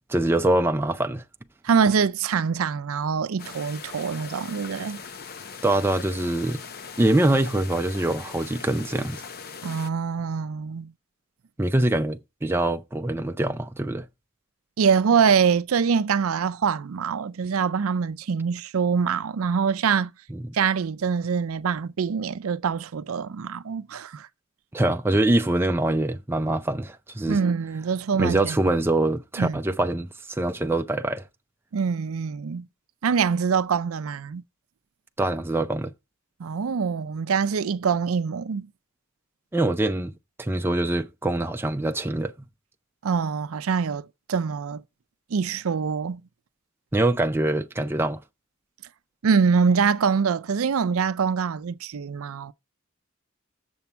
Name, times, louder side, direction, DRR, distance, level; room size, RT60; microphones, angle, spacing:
voice 1, 0.1-1.2 5.6-6.6 7.0-9.2 11.6-14.1 20.3-20.5 24.7-27.4 28.2-31.2 35.2-35.9 39.5-40.1 40.4-42.5 46.9-48.2, right 1 dB, 10° right, 0.4 m, -24 dB
voice 2, 1.6-5.0 9.6-10.9 14.8-20.1 20.5-24.3 27.3-28.6 29.4-29.6 31.7-32.7 33.0-34.4 36.4-38.7 43.0-44.8 45.3-46.2 49.2-52.5, right 6 dB, 80° right, 0.5 m, -24 dB
sound 1, 3.4-9.9, left 5 dB, 45° left, 0.7 m, -40 dB
7.0 x 7.0 x 4.4 m
head